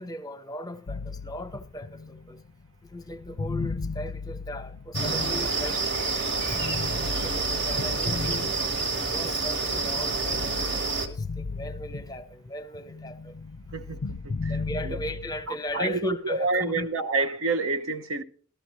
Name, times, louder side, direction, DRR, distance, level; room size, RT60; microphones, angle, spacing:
voice 1, 0.0-2.4 2.8-5.8 6.5-6.6 7.1-13.4 14.5-16.9, left 1 dB, 20° left, 0.7 m, -37 dB
sound 1, 0.9-6.0 6.5-9.2 9.6-12.5 12.7-15.4, left 4 dB, 50° left, 0.4 m, -36 dB
sound 2, 4.9-11.1, right 4 dB, 55° right, 1.6 m, -28 dB
voice 2, 13.7-14.6 14.8-15.0 15.5-18.2, right 3 dB, 75° right, 0.8 m, -28 dB
14.5 x 13.0 x 3.1 m
head